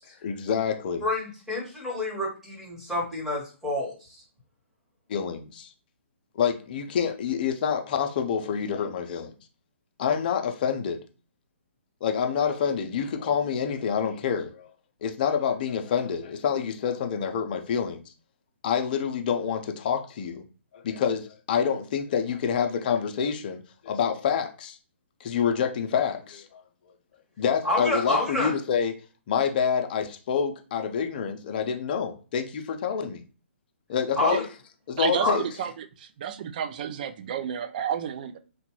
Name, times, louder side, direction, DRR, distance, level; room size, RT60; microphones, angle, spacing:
voice 1, 0.2-1.0 5.1-5.7 6.4-9.3 10.0-11.0 12.0-14.7 15.0-18.0 18.6-20.4 20.7-24.8 25.2-26.6 27.4-28.9 29.3-33.2 33.9-34.5 34.9-35.4, left 7 dB, 40° left, 0.5 m, -27 dB
voice 2, 1.0-4.2 27.6-28.5 34.2-34.4 35.2-35.4, left 1 dB, 5° right, 1.1 m, -28 dB
voice 3, 35.0-38.4, right 8 dB, 40° right, 0.3 m, -31 dB
2.8 x 2.2 x 3.0 m
figure-of-eight pair, 135°, 7 cm